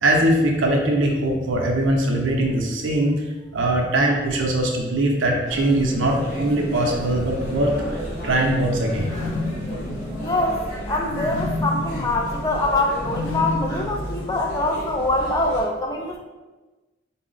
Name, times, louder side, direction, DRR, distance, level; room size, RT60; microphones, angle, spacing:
voice 1, 0.0-3.2 3.5-9.1, right 1 dB, 75° right, 0 dB, 0.6 m, -21 dB
sound 1, 5.5-15.6, equal, 40° left, 1.4 m, -33 dB
sound 2, 8.8-14.9, left 2 dB, 85° left, 0.4 m, -31 dB
voice 2, 10.2-10.6 10.9-16.2, left 2 dB, 20° left, 1 dB, 0.3 m, -24 dB
4.0 x 2.1 x 3.8 m, 1.2 s
head